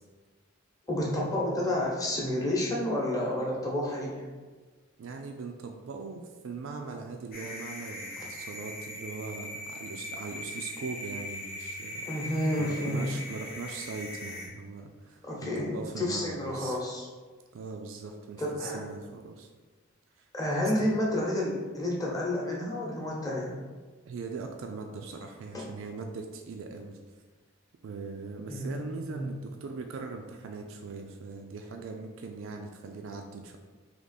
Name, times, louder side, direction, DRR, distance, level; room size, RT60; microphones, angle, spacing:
voice 1, 0.9-4.3 12.1-13.1 15.2-17.1 18.4-18.8 20.3-23.6 25.5-25.6 28.5-29.3, left 1 dB, 20° left, -4 dB, 0.9 m, -30 dB
voice 2, 5.0-12.0 12.6-16.8 17.5-19.5 20.2-20.3 20.8-20.9 24.1-27.0 27.8-33.6, right 4 dB, 70° right, 3 dB, 0.4 m, -40 dB
sound 1, 7.3-14.5, left 1 dB, 50° left, 0.9 m, -40 dB
3.6 x 2.9 x 4.0 m, 1.4 s
head